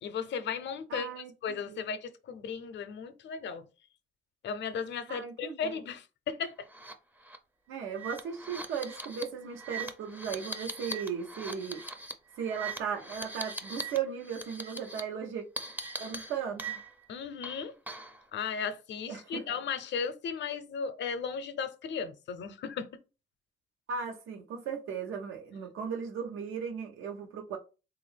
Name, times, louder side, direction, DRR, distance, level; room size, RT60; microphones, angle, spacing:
voice 1, 0.0-3.7 4.4-6.7 17.1-17.7 18.3-22.9, left 6 dB, 65° left, 0.6 m, -36 dB
voice 2, 0.9-2.0 5.1-5.7 7.7-11.8 12.4-15.4 16.0-16.8 19.1-19.4 23.9-27.6, right 7 dB, 85° right, 0.8 m, -37 dB
sound 1, 6.7-6.9 7.2-7.4 7.9-14.0 14.2-15.0 15.6-17.1 17.4-18.2, right 3 dB, 10° right, 0.5 m, -40 dB
3.5 x 2.5 x 3.3 m
cardioid pair, 90°, 20 cm